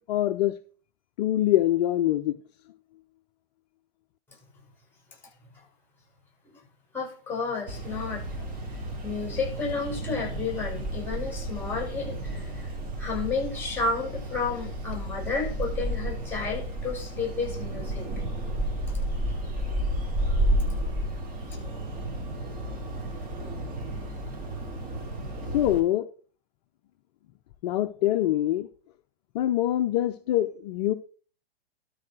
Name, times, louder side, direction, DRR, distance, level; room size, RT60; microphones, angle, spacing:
voice 1, 0.1-0.6 1.2-2.4 25.5-26.1 27.6-28.7 29.3-30.9, left 13 dB, 45° left, 0.7 m, -24 dB
voice 2, 6.9-8.5 9.0-12.7 13.0-18.1, left 4 dB, 5° left, 6.3 m, -32 dB
sound 1, 7.7-25.8, right 1 dB, 25° right, 3.1 m, -32 dB
12.5 x 4.9 x 6.1 m
figure-of-eight pair, 115°, 30 cm